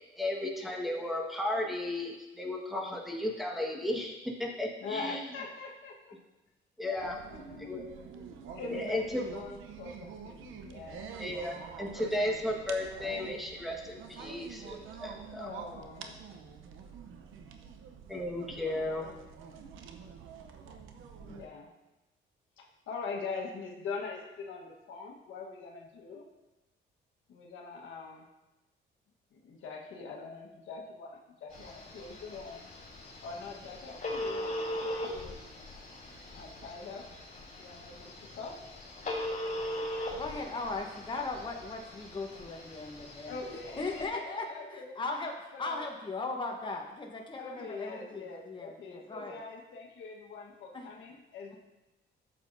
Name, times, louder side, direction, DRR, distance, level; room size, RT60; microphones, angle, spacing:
voice 1, 0.2-4.1 4.4-5.2 6.8-7.2 7.6-7.8 8.7-9.2 11.2-15.5 18.1-19.1, left 1 dB, ahead, -2 dB, 1.5 m, -34 dB
voice 2, 4.8-6.1 7.3-7.8 8.5-11.1 15.3-16.2 21.2-21.7 22.6-26.2 27.3-28.2 29.3-32.7 33.2-34.5 34.8-35.4 36.3-37.1 37.6-38.6 43.3-45.0 45.5-45.9 47.4-51.6, left 4 dB, 80° left, 0 dB, 1.4 m, -43 dB
sound 1, 7.0-21.5, right 6 dB, 85° right, 0.8 m, -47 dB
Telephone, 31.5-44.1, left 1 dB, 40° left, 2.8 m, -39 dB
voice 3, 40.1-43.4 43.8-49.4 50.7-50.9, left 3 dB, 25° left, 1 dB, 1.1 m, -38 dB
11.5 x 7.5 x 2.7 m, 1.0 s
cardioid pair, 90°, 20 cm